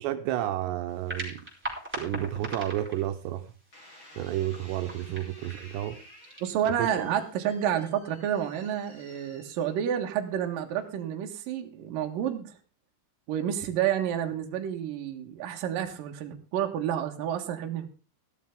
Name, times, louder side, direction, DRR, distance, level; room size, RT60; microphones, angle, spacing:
voice 1, 0.0-1.4 1.9-3.4 4.2-6.0 6.8-6.9, right 13 dB, 80° right, 8 dB, 3.0 m, -31 dB
sound 1, 0.9-7.8, right 1 dB, 5° right, 3.9 m, -42 dB
sound 2, 3.7-10.1 10.8-11.2, left 1 dB, 25° left, 4.6 m, -53 dB
voice 2, 6.4-12.6 13.3-17.9, right 9 dB, 65° right, 4 dB, 2.8 m, -30 dB
14.5 x 12.5 x 3.6 m, 0.33 s
omnidirectional pair, 4.9 m